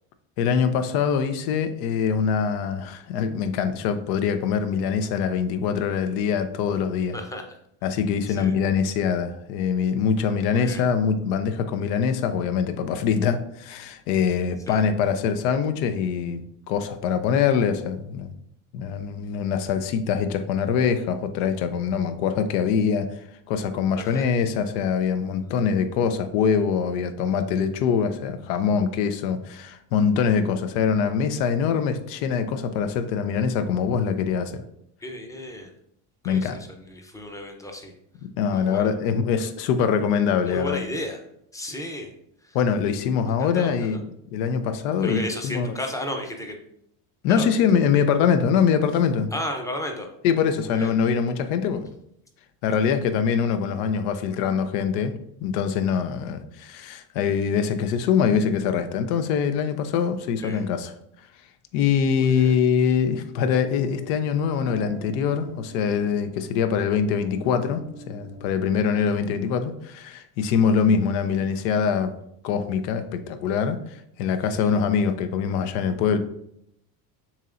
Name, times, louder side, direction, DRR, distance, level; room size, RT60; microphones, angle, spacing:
voice 1, 0.4-7.2 7.8-16.4 16.7-18.3 18.7-23.1 23.5-34.6 36.2-36.6 38.4-40.8 42.5-44.0 44.3-45.7 47.2-49.3 50.2-51.9 52.6-55.1 55.4-60.9 61.7-72.1 72.4-73.8 74.2-76.2, left 7 dB, 85° left, 9 dB, 0.7 m, -23 dB
voice 2, 7.1-7.6 8.3-8.6 10.5-10.8 14.7-14.8 24.0-24.3 35.0-35.7 36.2-37.9 38.5-38.9 40.5-41.2 41.5-42.1 42.4-42.6 43.4-44.0 45.0-46.6 47.3-47.5 47.9-48.0 49.3-50.1 50.6-50.9 60.4-60.6 62.2-62.5 69.0-69.2 74.4-74.7, left 1 dB, 5° left, 3 dB, 0.5 m, -34 dB
sound 1, 63.6-69.2, right 2 dB, 50° right, 0.6 m, -44 dB
7.1 x 2.9 x 2.5 m, 0.74 s
cardioid pair, 120°, 47 cm